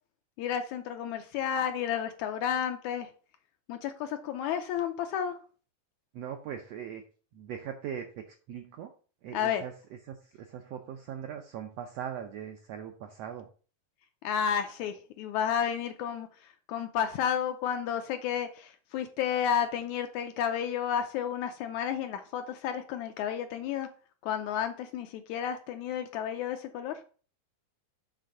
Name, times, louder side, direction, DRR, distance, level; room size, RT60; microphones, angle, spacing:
voice 1, 0.4-3.1 3.7-5.4 9.3-9.6 14.2-16.3 16.7-23.9 24.2-26.9, left 8 dB, 80° left, 7 dB, 1.8 m, -31 dB
voice 2, 6.1-7.0 7.3-8.9 9.2-9.7 10.1-13.5, right 9 dB, 80° right, 5 dB, 1.4 m, -40 dB
7.6 x 3.5 x 6.4 m, 0.39 s
omnidirectional pair, 3.8 m